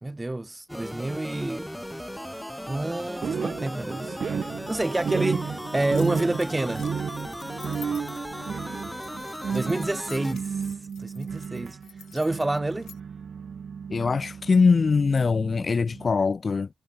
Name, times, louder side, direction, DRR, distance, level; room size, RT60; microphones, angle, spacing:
voice 1, 0.0-1.7 2.7-4.2 4.7-6.9 9.5-10.6 11.0-11.8 12.1-12.9, right 2 dB, 15° right, 4.7 m, -28 dB
sound 1, 0.7-10.3, equal, 5° left, 6.2 m, -37 dB
falling into nothing, 3.2-16.2, right 6 dB, 45° right, 3.3 m, -33 dB
sound 2, 5.7-13.0, left 10 dB, 70° left, 6.5 m, -50 dB
voice 2, 13.9-16.7, left 4 dB, 35° left, 4.4 m, -22 dB
cardioid pair, 90°, 0 cm